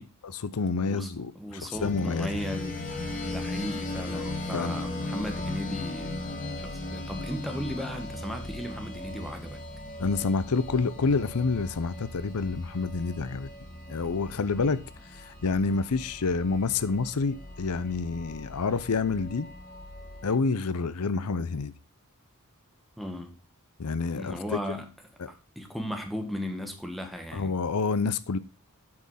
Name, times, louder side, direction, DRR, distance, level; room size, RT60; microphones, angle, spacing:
voice 1, 0.2-2.3 4.1-4.8 10.0-13.5 13.9-14.8 15.1-19.5 20.2-21.7 23.8-24.6 25.2-25.3 27.3-28.4, left 4 dB, 85° left, 0.6 m, -28 dB
voice 2, 1.3-2.8 3.2-6.2 6.6-9.6 23.0-23.3 24.1-24.9 25.3-27.5, equal, ahead, 1.6 m, -36 dB
sound 1, 1.7-20.4, left 2 dB, 40° left, 2.2 m, -38 dB
8.7 x 6.4 x 5.6 m
head